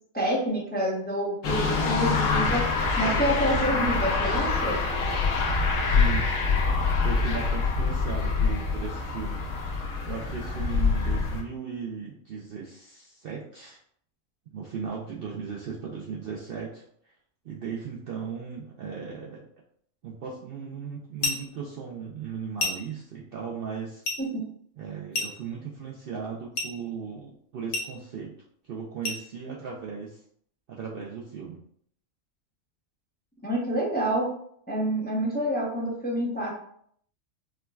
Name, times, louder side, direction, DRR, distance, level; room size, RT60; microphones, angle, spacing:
voice 1, 0.1-2.6 3.0-4.8 24.2-24.4 33.4-34.3 34.7-36.5, right 1 dB, 10° left, -4 dB, 0.4 m, -27 dB
sound 1, 1.4-11.4, left 4 dB, 80° left, 1.1 m, -25 dB
voice 2, 5.9-6.3 7.0-9.4 10.1-13.8 14.5-17.1 17.4-19.5 20.0-24.0 24.8-28.4 28.6-30.2 30.7-31.6, right 6 dB, 65° right, -3 dB, 0.5 m, -37 dB
sound 2, 21.2-21.5 22.6-23.0 24.0-24.3 25.1-25.5 26.6-26.8 27.7-28.0 29.0-29.3, left 2 dB, 55° left, 0.8 m, -30 dB
4.5 x 2.2 x 2.2 m, 0.65 s
omnidirectional pair, 1.4 m